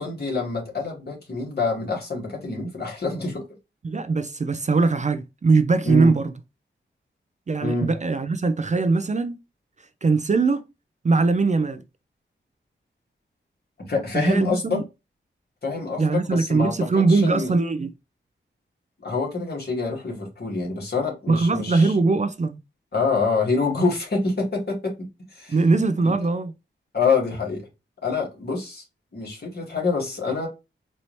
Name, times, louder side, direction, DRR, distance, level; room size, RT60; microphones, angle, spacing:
voice 1, 0.0-3.4 5.8-6.1 7.6-7.9 13.9-14.8 15.6-17.5 19.0-21.9 22.9-24.9 25.3-25.6 26.0-26.2 26.9-27.7 28.0-28.8 29.1-30.5, left 4 dB, 55° left, 2.0 m, -26 dB
voice 2, 3.8-6.3 7.5-9.4 10.0-10.6 11.0-11.8 14.1-14.8 16.0-17.9 21.3-22.6 25.5-26.5, right 3 dB, 35° right, 0.4 m, -21 dB
4.3 x 2.7 x 3.1 m
wide cardioid pair, 100°, 20 cm